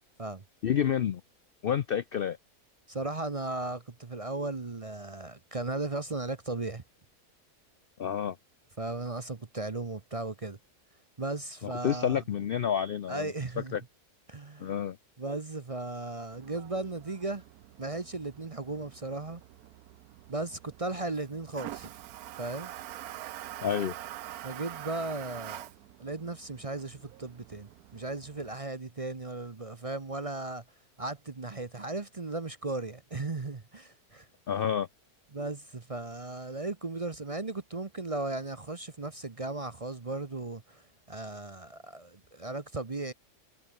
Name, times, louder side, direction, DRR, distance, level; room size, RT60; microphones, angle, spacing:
voice 1, 0.6-1.2 1.6-2.4 8.0-8.4 11.6-13.3 13.7-13.8 14.6-15.0 23.6-23.9 34.5-34.9, left 8 dB, 70° left, 0.5 m, -29 dB
voice 2, 2.9-6.8 8.8-10.6 11.2-12.2 13.1-13.7 14.3-14.7 15.2-17.4 17.8-19.4 20.3-21.9 22.4-22.7 24.4-25.7 26.0-30.6 31.0-34.3 35.3-40.8 41.1-43.1, right 2 dB, 30° right, 0.8 m, -36 dB
Toilet flush, 16.3-28.6, right 13 dB, 75° right, 1.1 m, -46 dB
omnidirectional pair, 1.7 m